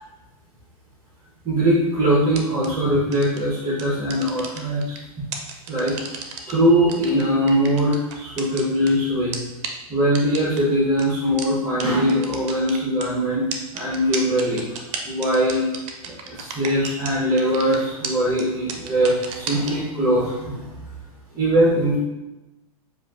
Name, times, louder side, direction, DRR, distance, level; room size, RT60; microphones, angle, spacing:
voice 1, 1.4-5.2 5.7-9.4 9.9-14.8 15.0-15.7 16.1-20.7 21.3-22.0, equal, 20° right, -5 dB, 1.0 m, -21 dB
sound 1, 2.3-2.7 3.1-3.4 3.8-5.0 5.3-6.5 6.9-8.9 9.3-9.4 9.6-9.7 10.1-10.6 11.0-11.1 11.4-11.5 11.8-11.9 12.1-13.0 13.5-17.1 17.4-17.8 18.0-18.1 18.4-18.5 18.7-19.7, right 6 dB, 50° right, 0.7 m, -31 dB
6.8 x 2.6 x 2.5 m, 1.0 s
hypercardioid pair, 120°, 19 cm